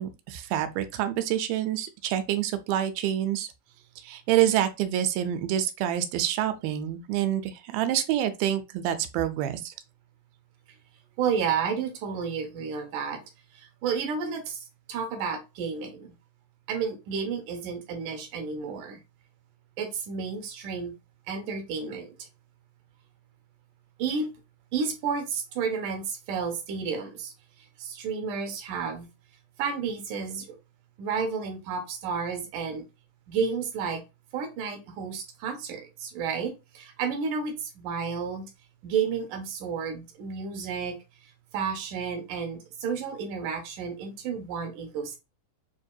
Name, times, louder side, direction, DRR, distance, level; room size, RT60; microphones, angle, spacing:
voice 1, 0.0-3.5 4.0-9.7, right 11 dB, 85° right, 2.5 m, -27 dB
voice 2, 11.2-13.2 13.5-16.1 16.7-19.0 19.8-20.9 21.3-22.2 24.0-24.3 24.7-27.3 27.8-29.1 29.6-30.6 31.0-32.9 33.3-34.0 34.3-38.5 38.8-41.0 41.5-45.2, right 6 dB, 70° right, 2.2 m, -31 dB
7.2 x 2.7 x 2.2 m
omnidirectional pair, 4.2 m